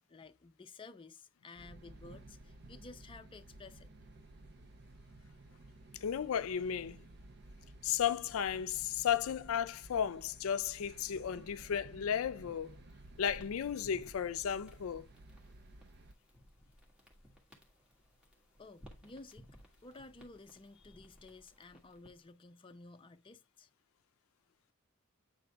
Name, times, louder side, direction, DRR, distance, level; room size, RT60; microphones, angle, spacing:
voice 1, 0.0-3.9 18.6-19.5 19.8-23.7, left 3 dB, 25° left, 0.5 m, -54 dB
sound 1, 1.6-16.1, right 2 dB, 55° right, 0.6 m, -55 dB
voice 2, 6.0-7.0 7.8-12.8 13.2-15.1, left 8 dB, 80° left, 0.4 m, -34 dB
sound 2, 12.6-22.3, equal, 5° right, 1.6 m, -60 dB
8.4 x 3.9 x 3.3 m
head